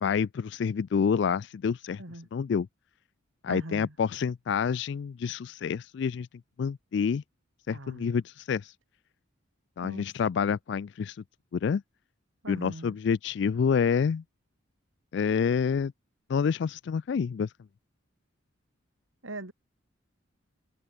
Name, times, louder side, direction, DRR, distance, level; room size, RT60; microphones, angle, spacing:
voice 1, 0.0-2.0 2.3-2.7 3.4-6.3 6.6-7.2 7.7-8.7 9.8-11.2 11.5-11.8 12.5-14.2 15.1-15.9 16.3-17.5, left 6 dB, 60° left, 0.3 m, -28 dB
voice 2, 3.5-3.9 7.7-8.2 9.8-10.1 12.4-13.0 19.2-19.5, right 1 dB, 85° right, 3.6 m, -40 dB
head